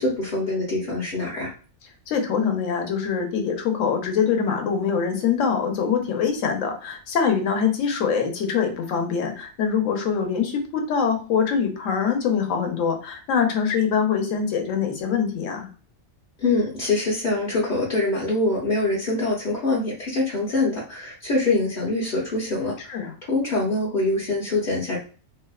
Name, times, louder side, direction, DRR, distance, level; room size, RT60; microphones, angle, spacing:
voice 1, 0.0-1.5 16.4-25.0, left 2 dB, 50° left, -4 dB, 0.6 m, -24 dB
voice 2, 2.1-15.7 22.8-23.1, left 6 dB, 75° left, 4 dB, 1.0 m, -24 dB
2.7 x 2.0 x 2.2 m, 0.37 s
omnidirectional pair, 1.3 m